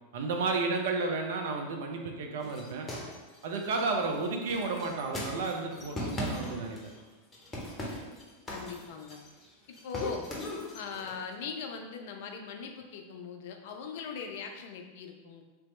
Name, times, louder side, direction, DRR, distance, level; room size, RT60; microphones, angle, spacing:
voice 1, 0.1-2.9 3.4-6.8, right 3 dB, 55° right, 2 dB, 0.5 m, -32 dB
sound 1, 2.4-7.0 7.3-9.5 9.7-11.2, left 1 dB, 15° left, 0.8 m, -39 dB
voice 2, 8.5-9.2 9.7-10.3 10.7-15.4, left 5 dB, 50° left, 4 dB, 0.4 m, -40 dB
3.3 x 2.9 x 3.0 m, 1.2 s
figure-of-eight pair, 90°, 0 cm